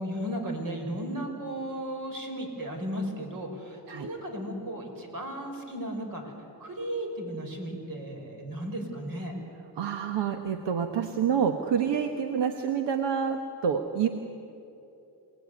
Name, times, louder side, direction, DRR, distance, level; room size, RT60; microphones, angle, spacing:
voice 1, 0.0-6.2 6.6-9.3, right 1 dB, 50° right, 3 dB, 5.9 m, -35 dB
voice 2, 9.8-14.1, right 7 dB, 80° right, 6 dB, 1.4 m, -27 dB
27.5 x 18.5 x 9.6 m, 2.9 s
cardioid pair, 90°, 42 cm